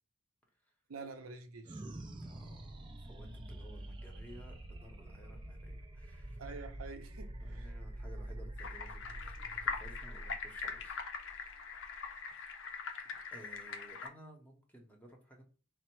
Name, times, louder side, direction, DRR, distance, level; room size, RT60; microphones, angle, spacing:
voice 1, 0.9-1.8 6.4-7.7, right 4 dB, 80° right, 0.6 m, -47 dB
sound 1, 1.6-12.3, right 1 dB, 20° right, 0.4 m, -46 dB
voice 2, 2.2-6.4 7.4-11.0 11.3-11.7 13.0-15.4, right 1 dB, 5° left, 0.8 m, -56 dB
sound 2, 8.6-14.1, left 5 dB, 60° left, 0.5 m, -42 dB
4.2 x 2.0 x 4.5 m
head